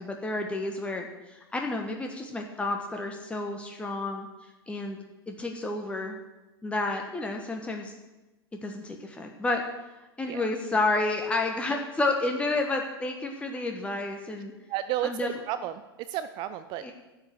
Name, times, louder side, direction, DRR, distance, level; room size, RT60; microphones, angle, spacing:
voice 1, 0.0-4.3 4.7-5.0 5.3-6.2 6.6-7.9 8.6-9.6 10.2-14.5 15.0-15.3 16.8-16.9, left 2 dB, 10° left, 2 dB, 1.2 m, -30 dB
voice 2, 14.7-16.9, right 12 dB, 35° right, 12 dB, 0.5 m, -33 dB
12.0 x 7.4 x 6.5 m, 1.1 s
figure-of-eight pair, 90°, 13 cm